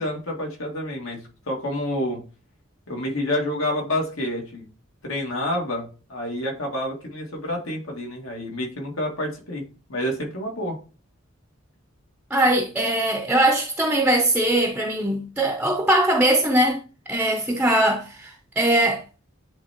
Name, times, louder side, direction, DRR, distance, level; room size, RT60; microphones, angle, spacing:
voice 1, 0.0-2.2 2.9-4.7 5.0-10.8, left 1 dB, 75° left, 2.2 m, -28 dB
voice 2, 12.3-16.8 17.1-19.0, right 1 dB, 5° right, 0.7 m, -21 dB
10.5 x 3.4 x 2.9 m
head